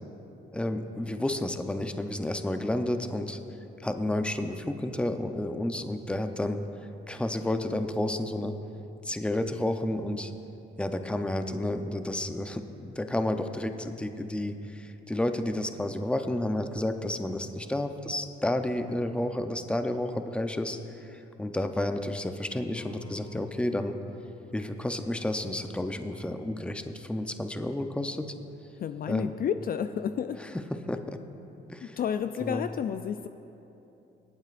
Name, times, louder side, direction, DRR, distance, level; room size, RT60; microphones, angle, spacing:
voice 1, 0.5-3.4 3.8-6.6 7.1-8.6 9.0-10.3 10.8-23.9 24.5-28.3 29.1-29.3 30.8-31.2 31.7-32.0 32.4-32.7, left 1 dB, 5° left, 7 dB, 0.6 m, -31 dB
Guitar, 22.7-28.2, left 3 dB, 85° left, 2.0 m, -49 dB
voice 2, 28.7-30.4 31.8-33.3, left 8 dB, 50° left, 10 dB, 0.4 m, -31 dB
24.0 x 9.0 x 2.5 m, 2.9 s
cardioid pair, 90°, 20 cm